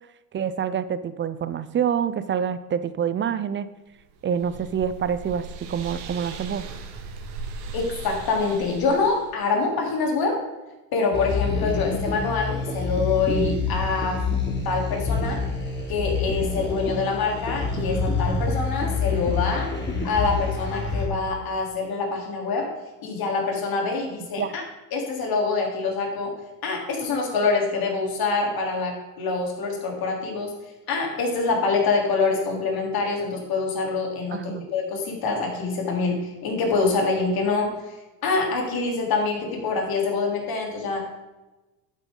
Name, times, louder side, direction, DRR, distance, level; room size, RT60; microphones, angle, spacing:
voice 1, 0.3-3.7 4.2-6.6 24.4-24.5 34.3-34.7, right 8 dB, 25° right, 13 dB, 0.6 m, -27 dB
sound 1, 4.0-9.3, right 4 dB, 60° right, 1.9 m, -38 dB
voice 2, 7.7-10.4 10.9-14.2 14.6-15.4 15.9-19.7 20.0-22.7 23.0-24.6 24.9-26.3 26.6-30.5 30.9-37.7 38.2-41.2, left 4 dB, 45° left, 1 dB, 3.7 m, -25 dB
sound 2, 11.1-21.1, left 4 dB, 20° left, 3.3 m, -27 dB
11.5 x 9.0 x 3.9 m, 1.1 s
hypercardioid pair, 85°, 49 cm